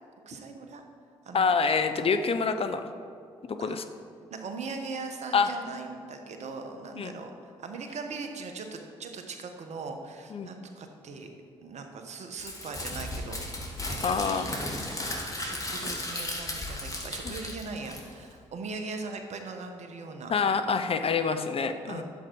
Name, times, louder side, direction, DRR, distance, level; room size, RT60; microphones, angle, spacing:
voice 1, 0.3-0.8 1.2-1.5 3.6-3.8 4.3-11.3 11.6-14.5 15.3-20.3 21.9-22.0, right 4 dB, 55° right, 5 dB, 1.3 m, -40 dB
voice 2, 1.3-2.9 3.5-3.8 5.3-5.5 7.0-7.1 10.3-10.5 14.0-14.6 20.3-22.0, left 5 dB, 45° left, 9 dB, 0.7 m, -26 dB
Crumpling crinkling, 12.4-18.3, left 1 dB, 25° left, 2.6 m, -35 dB
10.5 x 7.6 x 4.8 m, 2.4 s
hypercardioid pair, 45°, 14 cm